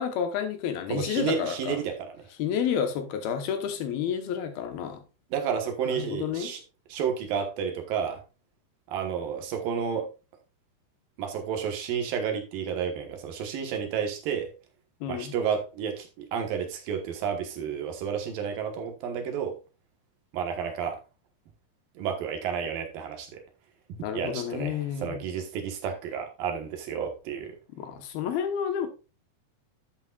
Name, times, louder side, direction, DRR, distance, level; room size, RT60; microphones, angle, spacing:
voice 1, 0.0-1.8 2.4-5.0 5.9-6.5 15.0-15.3 24.0-25.2 27.7-28.9, left 8 dB, 75° left, 2.9 m, -30 dB
voice 2, 0.9-2.1 5.3-6.6 6.9-8.2 8.9-10.1 11.2-14.5 15.1-19.6 20.3-21.0 22.0-23.4 24.1-27.6, right 7 dB, 70° right, 2.9 m, -31 dB
11.0 x 8.2 x 2.4 m
omnidirectional pair, 4.4 m